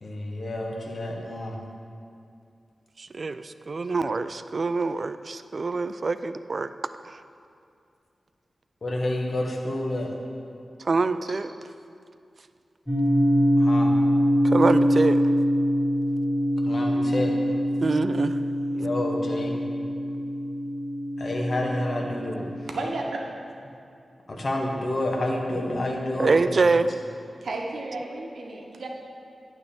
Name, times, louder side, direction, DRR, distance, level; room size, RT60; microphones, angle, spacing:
voice 1, 0.0-1.6 8.8-10.1 13.6-13.9 16.6-17.4 18.7-19.5 21.2-22.4 24.3-26.6, left 1 dB, 55° left, 0 dB, 1.2 m, -29 dB
voice 2, 3.0-6.7 7.0-7.2 10.8-11.5 14.4-15.2 17.8-18.4 26.2-26.9, right 3 dB, 55° right, 12 dB, 0.3 m, -25 dB
sound 1, 12.9-23.0, equal, 10° right, 2.1 m, -24 dB
voice 3, 22.6-23.2 27.4-28.9, right 2 dB, 80° right, 0 dB, 0.9 m, -33 dB
9.0 x 3.5 x 6.9 m, 2.5 s
cardioid pair, 55°, 0 cm